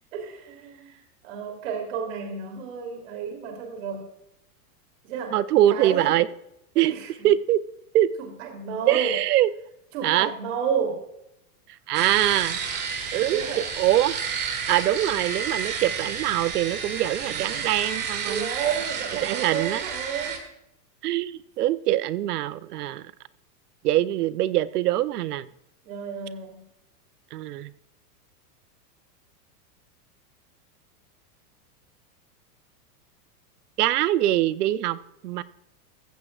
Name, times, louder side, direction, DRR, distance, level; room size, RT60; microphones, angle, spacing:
voice 1, 0.1-4.1 5.0-5.4 5.7-6.2 6.9-7.1 8.2-9.2 9.9-11.0 13.3-13.6 18.3-20.4 25.8-26.6, right 6 dB, 55° right, 3 dB, 3.1 m, -31 dB
voice 2, 5.3-6.3 6.7-6.9 7.2-7.6 7.9-8.1 8.9-9.5 10.0-10.3 11.9-12.6 13.1-14.2 14.7-18.5 19.2-19.8 21.0-23.0 23.8-25.5 27.3-27.7 33.8-35.0 35.2-35.4, right 13 dB, 75° right, 15 dB, 0.8 m, -23 dB
sound 1, 11.9-20.4, right 6 dB, 20° right, 1.6 m, -31 dB
15.0 x 14.5 x 2.4 m, 0.83 s
supercardioid pair, 165°, 46 cm